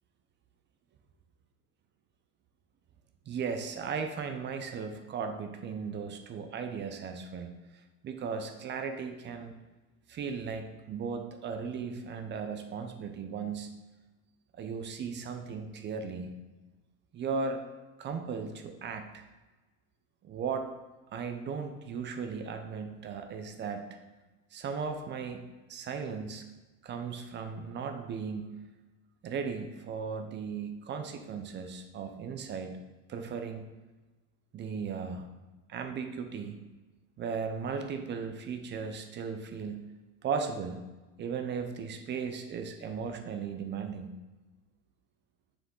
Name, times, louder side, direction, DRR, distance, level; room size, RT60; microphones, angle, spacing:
voice 1, 3.3-9.5 10.1-13.7 14.5-16.3 17.1-17.6 18.0-19.2 20.2-20.7 21.1-23.9 24.5-26.5 26.8-28.6 29.2-32.8 33.1-33.7 34.5-35.3 35.7-36.6 37.2-39.9 40.2-40.8 41.2-44.1, right 5 dB, 30° right, 6 dB, 0.6 m, -36 dB
6.3 x 5.0 x 3.8 m, 1.2 s
supercardioid pair, 130°, 38 cm